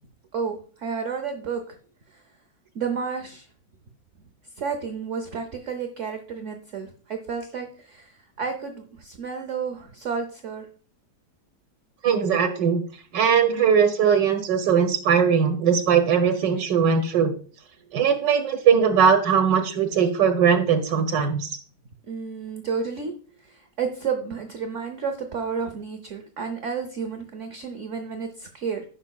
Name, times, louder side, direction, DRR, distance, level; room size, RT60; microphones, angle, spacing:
voice 1, 0.3-1.6 2.7-3.4 4.6-10.7 22.1-23.1 23.4-28.8, right 6 dB, 50° right, 5 dB, 1.1 m, -31 dB
voice 2, 12.0-12.8 13.1-17.3 17.9-21.5, right 7 dB, 90° right, 5 dB, 1.7 m, -20 dB
16.0 x 5.9 x 2.3 m, 0.42 s
omnidirectional pair, 1.8 m